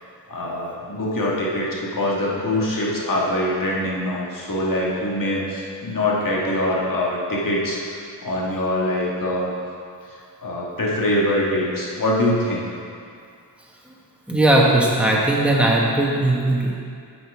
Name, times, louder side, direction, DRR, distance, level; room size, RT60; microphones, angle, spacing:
voice 1, 0.3-9.5 10.4-12.7, left 1 dB, 50° left, -4 dB, 1.8 m, -23 dB
voice 2, 14.3-16.7, right 1 dB, 5° right, -4 dB, 1.4 m, -18 dB
8.0 x 6.2 x 4.8 m, 2.4 s
wide cardioid pair, 85°, 41 cm